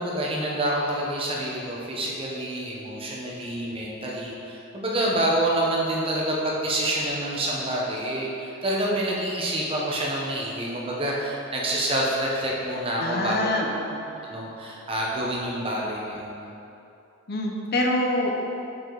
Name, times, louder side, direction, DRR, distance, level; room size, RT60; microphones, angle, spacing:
voice 1, 0.0-13.5 14.3-16.5, right 1 dB, 25° right, -4 dB, 0.9 m, -27 dB
voice 2, 13.0-14.3 17.3-18.3, left 1 dB, 50° left, 0 dB, 0.7 m, -26 dB
7.4 x 4.9 x 3.9 m, 2.8 s
head